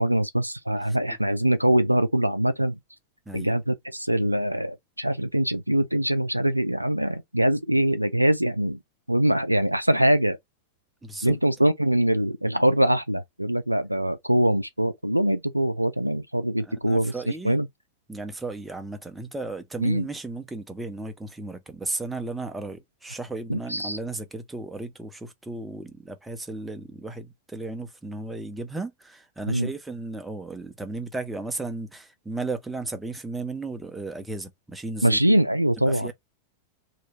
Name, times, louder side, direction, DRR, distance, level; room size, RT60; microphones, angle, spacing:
voice 1, 0.0-2.8 3.3-8.8 9.1-10.4 11.2-17.1 17.4-17.7 19.8-20.0 23.5-24.0 29.5-29.7 35.0-36.1, right 1 dB, 90° right, 0.4 m, -23 dB
voice 2, 11.0-11.4 16.6-17.6 18.1-35.2 35.8-36.1, right 3 dB, 10° right, 0.8 m, -35 dB
3.1 x 2.7 x 4.2 m
figure-of-eight pair, 90°, 0 cm